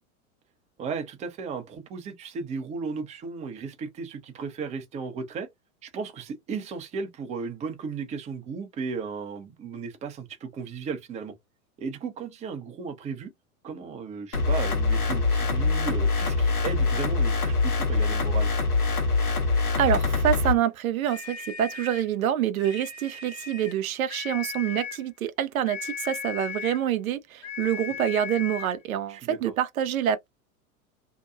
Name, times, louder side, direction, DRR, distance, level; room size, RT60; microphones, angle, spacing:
voice 1, 0.8-5.5 5.8-11.3 11.8-13.3 13.6-18.5 29.1-29.5, right 5 dB, 15° right, 0.5 m, -35 dB
sound 1, 14.3-20.5, left 3 dB, 85° left, 1.0 m, -24 dB
voice 2, 19.8-30.3, right 10 dB, 70° right, 0.6 m, -26 dB
sound 2, 21.0-22.1 22.6-23.8 24.1-25.1 25.7-26.9 27.4-28.8, left 7 dB, 40° left, 0.8 m, -37 dB
2.7 x 2.2 x 2.3 m
figure-of-eight pair, 90°, 43 cm